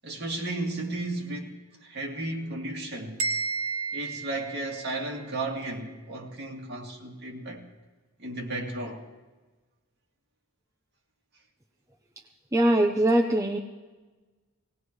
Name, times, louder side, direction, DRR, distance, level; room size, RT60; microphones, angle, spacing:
voice 1, 0.0-3.2 3.9-7.7 8.2-9.0, right 2 dB, 50° right, 2.3 m, -34 dB
sound 1, 3.2-5.2, right 4 dB, 70° right, 1.5 m, -32 dB
voice 2, 12.5-13.6, right 1 dB, 15° right, 0.6 m, -22 dB
19.0 x 18.0 x 3.1 m
head